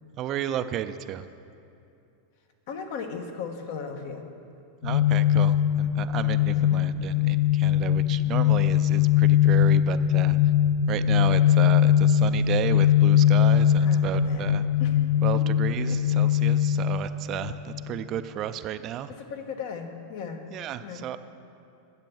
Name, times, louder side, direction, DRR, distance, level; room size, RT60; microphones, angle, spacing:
voice 1, 0.1-1.3 4.8-10.4 10.9-14.6 15.2-19.1 20.5-21.2, right 11 dB, 35° right, 11 dB, 0.4 m, -33 dB
voice 2, 2.7-4.3 6.5-6.8 13.8-14.5 14.8-15.0 15.9-16.2 19.2-20.4 20.8-21.0, left 6 dB, 60° left, 5 dB, 1.3 m, -37 dB
sound 1, 4.8-17.9, left 10 dB, 90° left, 0.4 m, -21 dB
10.5 x 8.3 x 7.1 m, 2.7 s
supercardioid pair, 145°, 0 cm